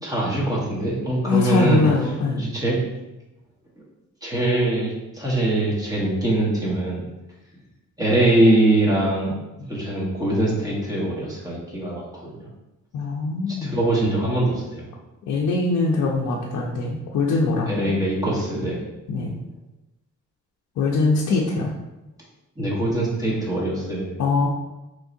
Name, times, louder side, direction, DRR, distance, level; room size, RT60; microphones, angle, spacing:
voice 1, 0.0-2.8 4.2-7.0 8.0-9.4 9.7-12.5 13.6-14.8 17.7-18.8 22.6-24.2, right 1 dB, 10° right, -6 dB, 1.2 m, -22 dB
voice 2, 1.2-2.4 12.9-13.8 15.3-17.9 19.1-19.4 20.8-21.7 24.2-24.5, left 3 dB, 65° left, -2 dB, 0.6 m, -22 dB
4.5 x 3.2 x 2.6 m, 0.99 s
cardioid pair, 130°, 30 cm